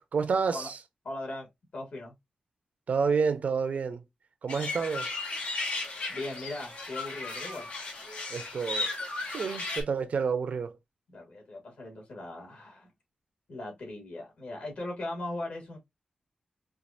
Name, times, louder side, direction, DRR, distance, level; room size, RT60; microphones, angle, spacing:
voice 1, 0.1-0.8 2.9-4.0 4.4-5.1 8.3-8.9 9.3-10.7, right 5 dB, 70° right, 0.7 m, -29 dB
voice 2, 1.0-2.1 6.1-7.7 11.1-12.9 13.5-15.8, left 2 dB, 65° left, 2.3 m, -39 dB
sound 1, 4.5-9.8, left 3 dB, 80° left, 1.6 m, -35 dB
4.7 x 2.6 x 2.6 m
wide cardioid pair, 120°, 3 cm